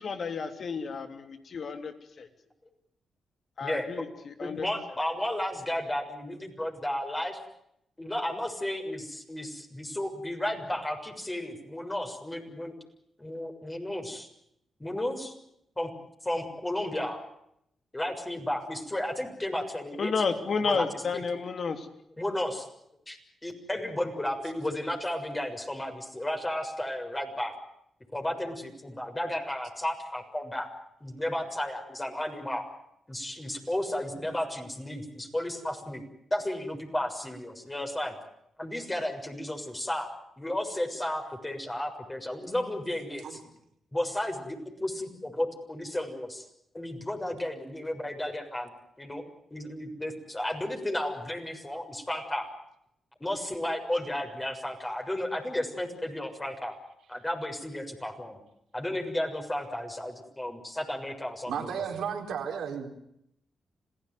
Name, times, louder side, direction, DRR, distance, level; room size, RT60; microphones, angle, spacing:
voice 1, 0.0-2.3 3.6-4.7 20.0-21.9, left 5 dB, 60° left, 8 dB, 3.3 m, -31 dB
voice 2, 3.6-4.0 4.4-7.4 8.0-12.7 13.2-14.3 14.8-15.3 15.8-15.9 16.2-17.2 17.9-20.1 20.6-21.2 22.2-22.7 23.1-27.5 28.1-30.7 31.0-32.7 33.1-36.0 36.3-38.1 38.6-40.1 40.4-43.4 43.9-46.4 46.7-48.7 49.0-49.2 49.5-52.5 53.2-56.8 57.1-58.4 58.7-62.0, left 1 dB, 20° left, 4 dB, 6.7 m, -33 dB
voice 3, 61.5-62.9, right 7 dB, 75° right, 5 dB, 4.2 m, -33 dB
27.0 x 17.0 x 9.4 m, 0.77 s
supercardioid pair, 45°, 0 cm